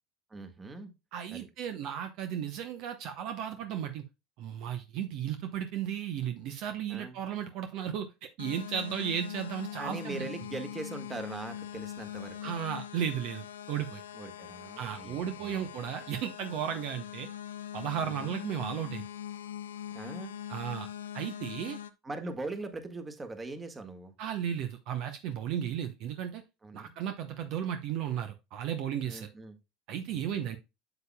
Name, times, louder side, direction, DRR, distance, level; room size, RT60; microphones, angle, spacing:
voice 1, 0.3-0.9 1.3-1.5 6.9-7.2 9.7-12.5 14.1-15.7 18.0-18.4 19.9-20.4 22.0-24.1 26.6-26.9 29.0-29.6 30.1-30.5, right 3 dB, 20° right, 1.6 m, -41 dB
voice 2, 1.1-4.0 4.4-8.1 8.4-10.3 12.4-14.0 14.8-17.3 17.7-19.0 20.5-20.9 21.1-21.8 24.2-26.4 26.7-29.3 29.9-30.6, right 9 dB, 60° right, 0.8 m, -34 dB
sound 1, 8.4-21.9, left 10 dB, 85° left, 0.5 m, -42 dB
8.0 x 7.0 x 2.2 m
hypercardioid pair, 75°, 0 cm